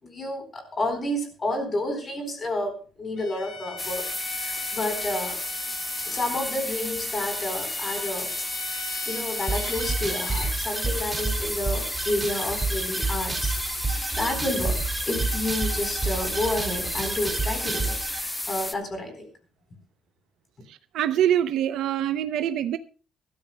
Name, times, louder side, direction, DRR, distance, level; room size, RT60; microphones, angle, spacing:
voice 1, 0.0-4.0 4.4-5.4 5.9-8.3 9.1-13.6 14.1-14.8 15.1-19.3, left 1 dB, 25° left, 4.0 m, -30 dB
Bowed string instrument, 3.2-10.6, left 4 dB, 45° left, 4.7 m, -40 dB
sound 1, 3.8-18.7, left 1 dB, 10° left, 0.9 m, -32 dB
sound 2, 9.5-18.2, right 3 dB, 15° right, 1.9 m, -30 dB
voice 2, 20.7-22.8, right 10 dB, 85° right, 0.7 m, -25 dB
23.0 x 13.5 x 2.3 m
cardioid pair, 180°, 0 cm